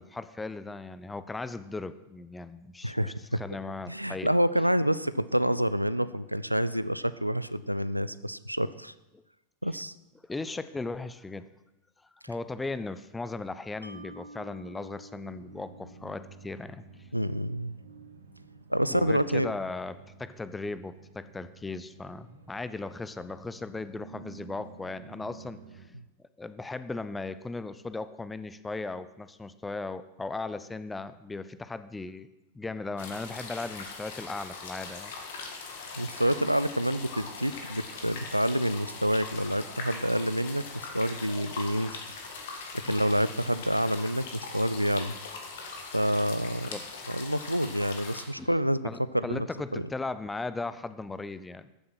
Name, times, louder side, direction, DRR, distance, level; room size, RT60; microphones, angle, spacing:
voice 1, 0.0-4.3 9.1-9.2 10.3-11.5 12.3-16.8 18.9-25.9 26.4-32.3 32.5-35.1 35.4-35.5 42.9-43.0 46.7-47.1 48.4-48.5 48.8-51.7, left 3 dB, 10° left, 14 dB, 0.6 m, -37 dB
voice 2, 2.8-3.4 3.9-8.9 9.6-9.9 17.1-17.8 18.7-19.5 25.9-26.0 36.0-40.6 40.9-42.0 42.5-42.6 42.8-45.2 45.9-46.7 47.1-48.9 49.1-49.5 49.7-49.9, equal, 90° right, 15 dB, 0.4 m, -28 dB
Mallet percussion, 13.8-17.1, equal, 85° left, 0.7 m, -50 dB
sound 1, 15.2-25.9, right 5 dB, 75° right, 1.3 m, -51 dB
sound 2, 33.0-48.2, left 4 dB, 55° left, 1.9 m, -41 dB
13.5 x 7.5 x 6.1 m, 0.96 s
figure-of-eight pair, 90°, 0 cm